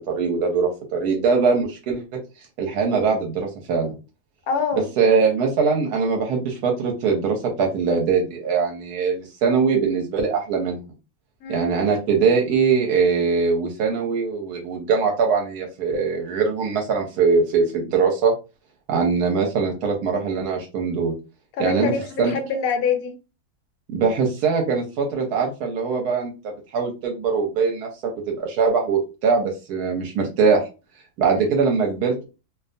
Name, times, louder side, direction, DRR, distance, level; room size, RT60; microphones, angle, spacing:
voice 1, 0.1-2.2 2.6-3.9 5.0-10.8 11.5-18.3 18.9-21.1 21.6-21.9 22.2-22.3 23.9-27.9 28.3-30.7 31.2-32.2, right 5 dB, 85° right, 1 dB, 1.1 m, -22 dB
voice 2, 4.5-4.9 11.4-11.7 21.6-23.1 31.3-31.5, left 5 dB, 75° left, 6 dB, 1.0 m, -25 dB
2.6 x 2.2 x 2.5 m, 0.30 s
omnidirectional pair, 1.6 m